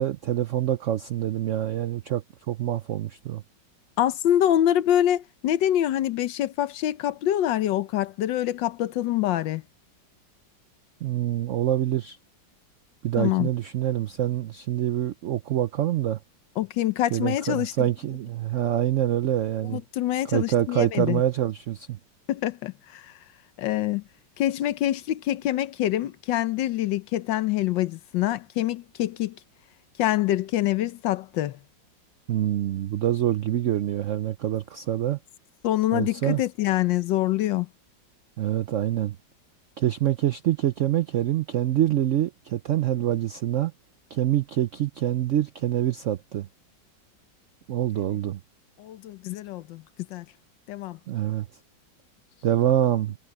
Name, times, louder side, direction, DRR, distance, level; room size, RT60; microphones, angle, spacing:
voice 1, 0.0-3.4 11.0-12.2 13.0-16.2 17.1-19.8 20.2-22.0 32.3-35.2 35.9-36.4 38.4-39.2 39.8-43.7 44.1-46.5 47.7-48.4 51.1-51.5 52.4-53.1, right 12 dB, 80° right, 0.6 m, -25 dB
voice 2, 4.0-9.6 13.2-13.5 16.6-17.9 19.7-21.2 22.3-23.1 23.6-24.0 24.4-29.4 30.0-31.6 35.6-37.7 48.8-49.8 50.1-50.2 50.7-51.0, left 12 dB, 80° left, 1.5 m, -25 dB
omnidirectional pair, 2.0 m